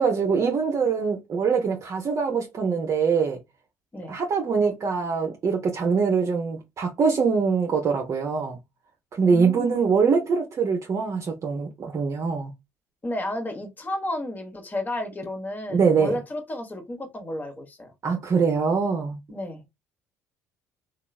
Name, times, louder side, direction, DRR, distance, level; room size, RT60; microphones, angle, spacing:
voice 1, 0.0-3.4 4.1-8.6 9.2-12.5 15.7-16.1 18.0-19.2, right 5 dB, 40° right, 0.7 m, -23 dB
voice 2, 9.2-9.8 13.0-17.9 19.3-19.6, left 1 dB, 25° left, 1.1 m, -32 dB
2.9 x 2.3 x 2.3 m
hypercardioid pair, 65°, 8 cm